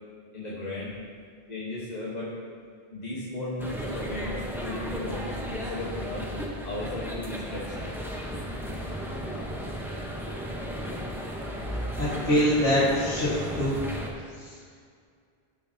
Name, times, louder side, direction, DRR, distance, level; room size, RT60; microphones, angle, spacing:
voice 1, 0.3-0.9 1.5-2.3 2.9-6.3 6.6-7.7, left 1 dB, 40° left, -7 dB, 1.4 m, -35 dB
sound 1, 3.6-14.1, equal, ahead, 0.9 m, -34 dB
voice 2, 12.0-13.8 14.3-14.6, equal, 85° left, -10 dB, 2.1 m, -24 dB
14.0 x 6.5 x 2.8 m, 2.1 s
omnidirectional pair, 1.1 m